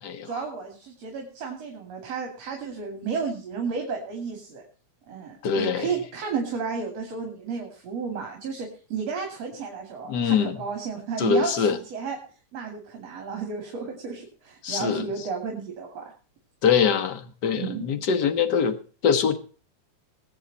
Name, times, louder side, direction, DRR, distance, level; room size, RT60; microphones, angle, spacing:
voice 1, 0.2-4.6 5.1-12.2 12.5-16.1 17.6-17.9, right 5 dB, 60° right, 2 dB, 3.7 m, -32 dB
voice 2, 5.4-5.9 10.1-10.6 11.2-11.8 14.6-15.1 16.6-18.7 19.0-19.4, left 6 dB, 45° left, 9 dB, 1.4 m, -23 dB
21.0 x 8.2 x 4.2 m, 0.38 s
omnidirectional pair, 3.3 m